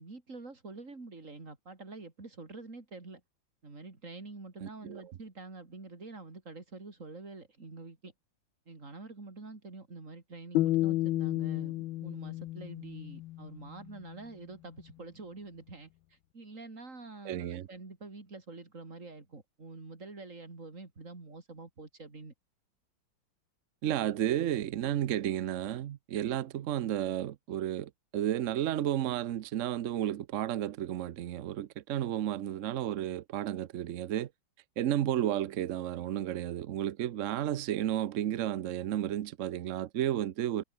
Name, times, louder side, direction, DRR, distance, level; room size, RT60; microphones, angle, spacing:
voice 1, 0.0-3.2 3.6-8.1 8.7-22.3, right 3 dB, 40° right, 3.9 m, -47 dB
voice 2, 4.6-5.0 17.2-17.7 23.8-34.3 34.8-40.6, right 11 dB, 70° right, 0.7 m, -32 dB
sound 1, 10.5-13.7, left 16 dB, 80° left, 1.4 m, -31 dB
omnidirectional pair, 2.2 m